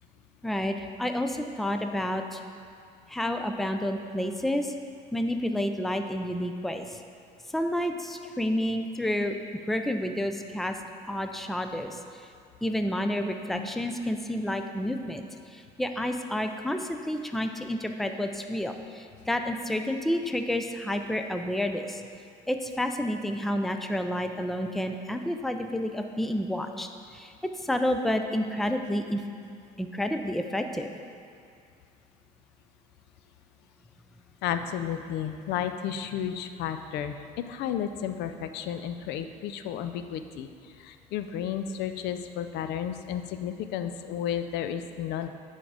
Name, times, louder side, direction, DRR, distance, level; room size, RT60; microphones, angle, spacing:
voice 1, 0.4-2.4 3.1-4.7 5.1-7.0 7.5-9.4 9.7-10.8 11.0-12.3 12.6-15.2 15.5-22.0 22.5-29.2 29.8-31.0, left 1 dB, ahead, 6 dB, 0.4 m, -30 dB
voice 2, 34.4-45.3, left 9 dB, 85° left, 9 dB, 0.4 m, -33 dB
9.2 x 3.7 x 4.8 m, 2.3 s
cardioid pair, 110°, 17 cm